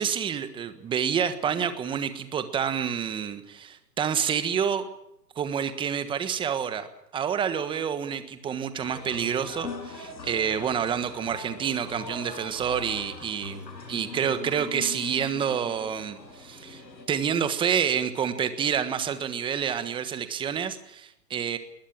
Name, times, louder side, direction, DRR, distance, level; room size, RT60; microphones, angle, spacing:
voice 1, 0.0-4.9 5.4-6.9 7.1-13.6 13.9-16.8 17.1-21.6, right 8 dB, 10° right, 11 dB, 1.4 m, -28 dB
sound 1, 8.8-17.1, left 4 dB, 85° left, 7.2 m, -41 dB
21.0 x 19.5 x 8.8 m, 0.79 s
hypercardioid pair, 145°, 50 cm